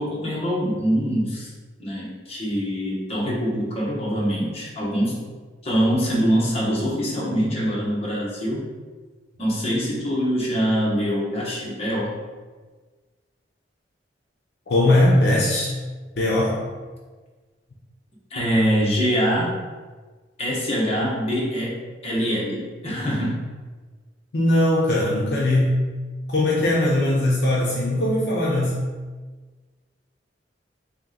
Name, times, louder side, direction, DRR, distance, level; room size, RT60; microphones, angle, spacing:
voice 1, 0.0-1.5 1.8-5.2 5.6-8.6 9.4-12.2 18.3-19.6 20.4-21.8 22.0-23.4, equal, 35° left, -5 dB, 1.0 m, -24 dB
voice 2, 14.7-15.7 16.2-16.6 24.3-25.8 26.3-28.8, left 1 dB, 65° left, -5 dB, 0.6 m, -20 dB
3.2 x 3.0 x 3.8 m, 1.4 s
head